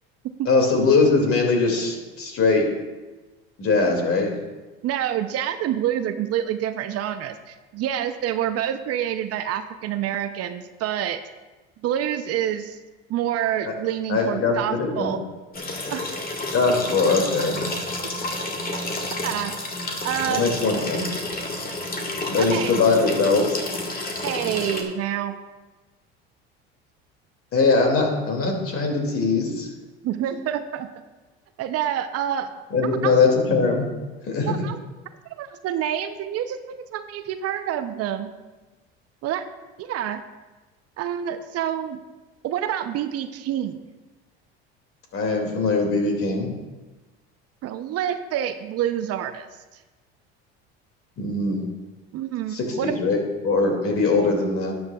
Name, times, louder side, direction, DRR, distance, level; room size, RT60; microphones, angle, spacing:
voice 1, 0.5-2.6 3.6-4.3 13.6-13.7 14.1-15.2 16.5-17.6 20.3-21.0 22.3-23.6 27.5-29.7 32.7-33.9 34.3-34.5 45.1-46.5 51.2-51.7 52.5-54.7, left 3 dB, 45° left, 2 dB, 2.4 m, -21 dB
voice 2, 4.8-11.2 11.8-12.8 13.1-15.2 15.9-16.1 18.7-18.8 19.2-19.5 20.0-20.5 22.4-22.7 24.2-25.3 30.0-30.9 31.6-32.5 33.0-33.2 34.4-34.8 35.3-38.3 39.2-39.4 39.8-40.2 41.0-42.0 42.4-43.8 47.6-49.5 52.1-53.0, right 10 dB, 50° right, 10 dB, 0.7 m, -27 dB
sound 1, 15.5-24.8, left 2 dB, 30° left, 1.6 m, -30 dB
12.0 x 9.6 x 2.4 m, 1.2 s
supercardioid pair, 85°, 31 cm